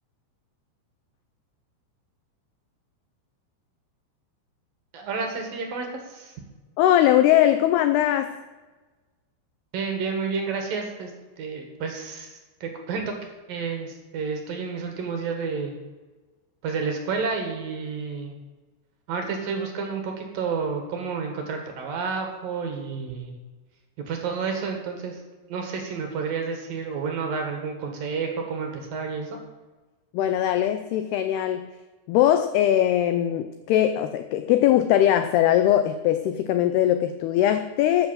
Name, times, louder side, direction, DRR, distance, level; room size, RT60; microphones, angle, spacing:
voice 1, 4.9-6.3 9.7-11.1 11.4-13.1 13.5-15.8 16.6-18.4 19.1-23.4 24.0-25.2 25.5-29.4, right 5 dB, 60° right, 3 dB, 3.0 m, -30 dB
voice 2, 6.8-8.4 30.1-31.7 32.1-38.1, left 12 dB, 85° left, 9 dB, 2.3 m, -21 dB
13.5 x 8.1 x 7.6 m, 1.2 s
omnidirectional pair, 5.4 m